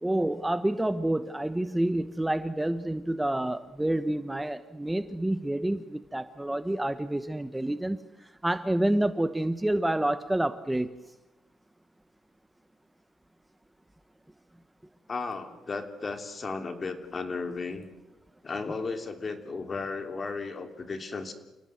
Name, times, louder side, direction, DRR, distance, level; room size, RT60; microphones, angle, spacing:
voice 1, 0.0-8.0 8.4-10.9, right 1 dB, 10° right, 11 dB, 1.0 m, -28 dB
voice 2, 15.1-17.9 18.4-21.3, left 4 dB, 35° left, 7 dB, 3.2 m, -35 dB
29.0 x 18.0 x 7.9 m, 1.0 s
cardioid pair, 90°, 0 cm